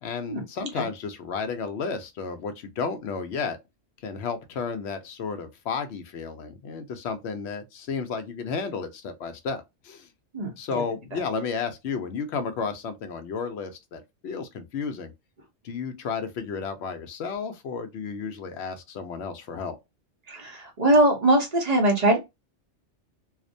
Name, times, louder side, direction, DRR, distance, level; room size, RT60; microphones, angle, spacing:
voice 1, 0.0-3.6 4.0-10.1 10.6-15.1 15.6-19.8, left 5 dB, 70° left, 0.8 m, -32 dB
voice 2, 10.3-10.8 11.1-11.2 20.3-22.2, right 1 dB, 40° right, 0.7 m, -22 dB
2.4 x 2.1 x 2.5 m
omnidirectional pair, 1.2 m